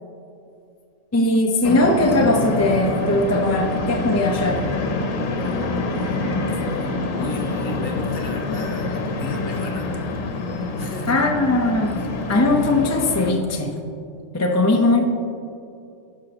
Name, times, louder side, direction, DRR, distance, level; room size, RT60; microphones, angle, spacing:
voice 1, 1.1-4.6 11.1-12.0 12.3-13.8 14.3-15.0, left 2 dB, 20° left, 2 dB, 0.5 m, -19 dB
sound 1, 1.6-13.3, left 3 dB, 85° left, 1.1 m, -26 dB
voice 2, 7.1-9.9 10.8-11.3, left 2 dB, 50° left, 2 dB, 1.3 m, -33 dB
16.5 x 5.9 x 2.9 m, 2.5 s
omnidirectional pair, 1.3 m